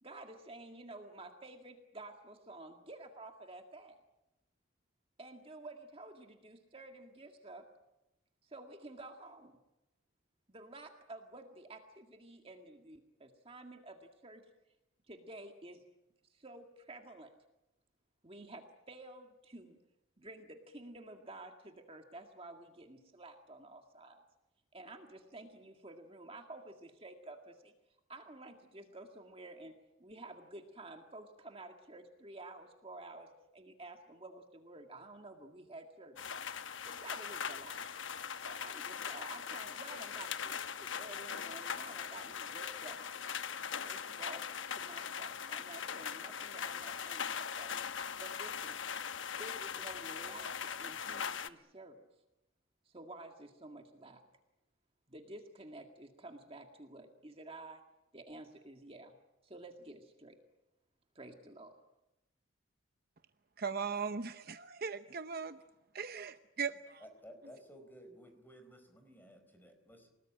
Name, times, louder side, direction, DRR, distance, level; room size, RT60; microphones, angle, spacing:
voice 1, 0.0-4.0 5.2-7.6 8.4-9.5 10.5-14.4 15.1-15.8 16.3-17.3 18.2-19.8 20.2-24.2 24.7-27.7 28.1-36.2 36.9-37.9 38.5-43.0 43.8-44.4 44.7-47.7 48.2-48.8 49.3-52.1 52.9-54.2 55.1-57.8 58.1-59.1 59.4-60.3 61.2-61.8, right 2 dB, 25° right, 4 dB, 1.9 m, -51 dB
sound 1, 36.2-51.5, left 7 dB, 65° left, 1.0 m, -40 dB
voice 2, 63.6-65.5 65.9-67.0, right 5 dB, 45° right, 10 dB, 0.8 m, -38 dB
voice 3, 67.0-70.1, equal, 10° left, 7 dB, 4.6 m, -55 dB
28.5 x 19.0 x 9.0 m, 0.96 s
head